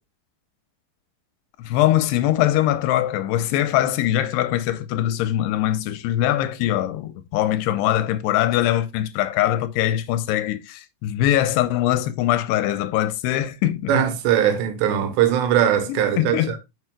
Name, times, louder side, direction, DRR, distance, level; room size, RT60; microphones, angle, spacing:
voice 1, 1.6-13.9 16.1-16.6, left 13 dB, 85° left, 2.7 m, -22 dB
voice 2, 13.9-16.6, right 9 dB, 85° right, 3.3 m, -20 dB
8.9 x 6.4 x 2.2 m
omnidirectional pair, 4.8 m